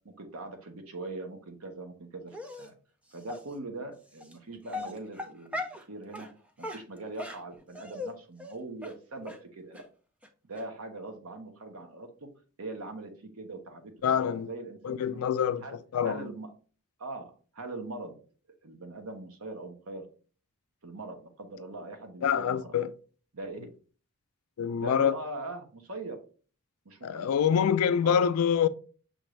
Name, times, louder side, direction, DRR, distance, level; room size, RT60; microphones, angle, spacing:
voice 1, 0.2-2.7 3.1-6.3 6.6-9.8 10.4-12.3 12.6-15.2 15.6-15.8 16.0-16.5 17.0-18.1 18.6-20.1 20.8-22.7 23.3-23.6 24.7-26.2 26.8-27.3 28.0-28.2, right 2 dB, 80° right, 1.0 m, -41 dB
Dog, 2.3-2.7 3.3-3.4 4.2-4.3 4.7-5.8 6.1-6.3 6.6-8.1 8.4-8.5 8.8-8.9 9.3-9.4 9.7-9.8 10.2-10.3 10.6-10.7, left 2 dB, 5° right, 0.4 m, -38 dB
voice 2, 14.0-14.5 14.8-16.3 22.2-22.9 24.6-25.1 27.0-28.7, left 8 dB, 80° left, 0.4 m, -26 dB
6.3 x 2.6 x 3.1 m
head